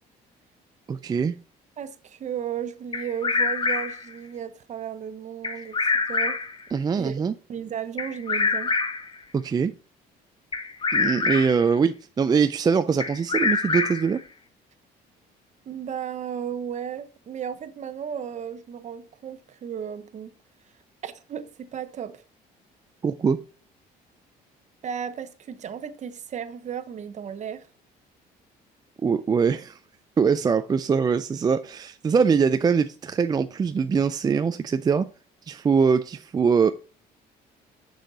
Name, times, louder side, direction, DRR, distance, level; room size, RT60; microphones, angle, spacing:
voice 1, 0.9-1.4 6.7-7.3 9.3-9.7 10.9-14.2 23.0-23.4 29.0-29.8 30.2-35.1 35.5-36.7, right 6 dB, 25° right, 0.4 m, -22 dB
voice 2, 1.8-5.8 6.1-6.4 7.0-7.1 7.5-8.7 15.7-20.3 21.0-22.2 24.8-27.7, right 8 dB, 45° right, 0.9 m, -34 dB
Bird vocalization bird call bird song, 2.9-4.1 5.4-6.6 8.0-9.1 10.5-11.6 13.0-14.2, left 4 dB, 30° left, 1.0 m, -25 dB
6.5 x 6.4 x 4.0 m
cardioid pair, 110°, 17 cm